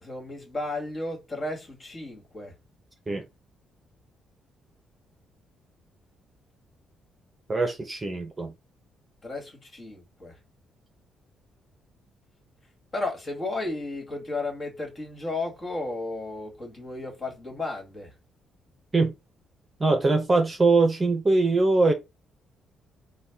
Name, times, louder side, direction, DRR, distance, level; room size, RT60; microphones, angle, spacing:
voice 1, 0.0-2.5 9.2-10.3 12.9-18.1, left 2 dB, 35° left, 1.8 m, -33 dB
voice 2, 7.5-8.5 18.9-19.1 19.8-21.9, right 3 dB, 25° right, 0.9 m, -22 dB
4.0 x 2.3 x 3.5 m
cardioid pair, 90°, 0 cm